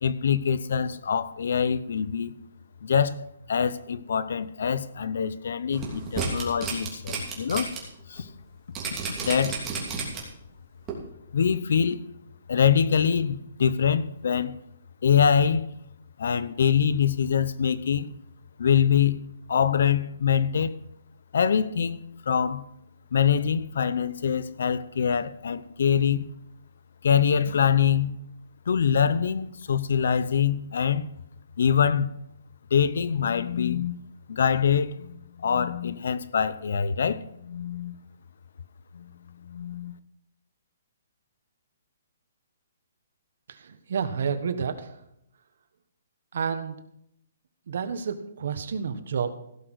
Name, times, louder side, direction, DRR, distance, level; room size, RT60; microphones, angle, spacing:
voice 1, 0.0-2.3 2.8-7.7 8.1-8.3 9.2-9.6 11.3-12.1 12.5-14.6 15.0-15.7 16.2-18.1 18.6-19.2 19.5-20.8 21.3-22.6 23.1-26.3 27.0-28.2 28.7-31.1 31.6-32.1 32.7-34.0 34.3-38.0 38.9-39.1 39.4-39.9, left 7 dB, 65° left, 16 dB, 0.8 m, -24 dB
sound 1, 5.7-7.8 8.2-8.3 8.8-10.4 10.9-11.0, right 6 dB, 15° right, 2.9 m, -32 dB
voice 2, 43.5-45.0 46.3-46.8 47.7-49.3, right 6 dB, 60° right, 10 dB, 1.4 m, -30 dB
16.0 x 6.2 x 6.4 m, 0.77 s
hypercardioid pair, 160°, 0 cm